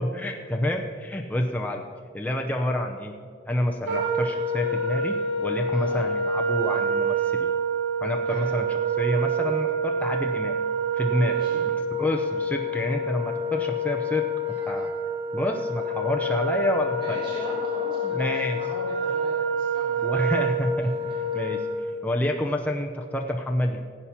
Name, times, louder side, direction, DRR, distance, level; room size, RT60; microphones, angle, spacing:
voice 1, 0.0-1.9 2.1-3.1 3.5-5.2 5.4-7.5 8.0-8.7 9.0-10.6 11.0-11.4 11.7-14.2 14.6-14.9 15.3-17.2 18.1-18.6 20.0-20.9 21.3-21.7 22.0-23.8, left 1 dB, 10° left, 1 dB, 0.6 m, -28 dB
Wind instrument woodwind instrument, 3.9-22.0, right 2 dB, 60° right, 2.8 m, -27 dB
voice 2, 11.3-11.6 17.0-20.1 20.8-20.9, equal, 25° right, -7 dB, 3.2 m, -39 dB
15.5 x 8.6 x 5.8 m, 2.1 s
head